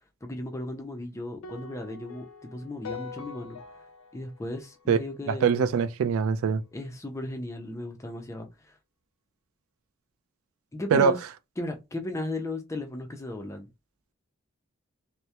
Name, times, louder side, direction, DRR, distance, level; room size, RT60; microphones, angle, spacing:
voice 1, 0.2-3.6 4.1-5.7 6.7-8.7 10.7-11.2 11.6-13.7, left 1 dB, 15° left, 0.4 m, -36 dB
sound 1, 1.4-5.7, left 5 dB, 85° left, 0.5 m, -44 dB
voice 2, 5.3-6.6 10.9-11.1, right 6 dB, 70° right, 0.3 m, -23 dB
2.2 x 2.0 x 2.7 m
head